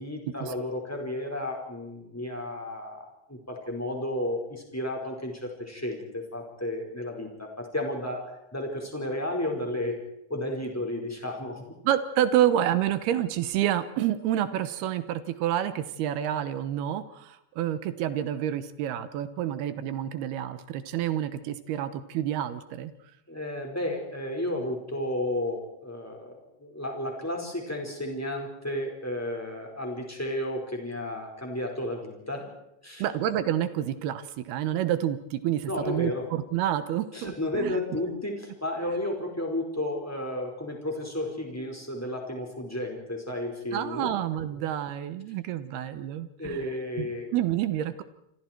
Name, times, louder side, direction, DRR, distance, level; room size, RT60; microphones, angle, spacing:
voice 1, 0.0-8.2 8.5-10.0 10.3-11.6 23.3-26.3 26.6-32.4 32.8-33.0 35.7-36.3 37.1-38.3 38.6-44.1 46.4-47.3, left 1 dB, 5° left, 1 dB, 4.3 m, -32 dB
voice 2, 11.8-22.9 33.0-37.8 43.7-46.7 47.0-48.0, right 11 dB, 70° right, 12 dB, 2.6 m, -28 dB
28.5 x 26.0 x 4.6 m, 0.80 s
omnidirectional pair, 5.5 m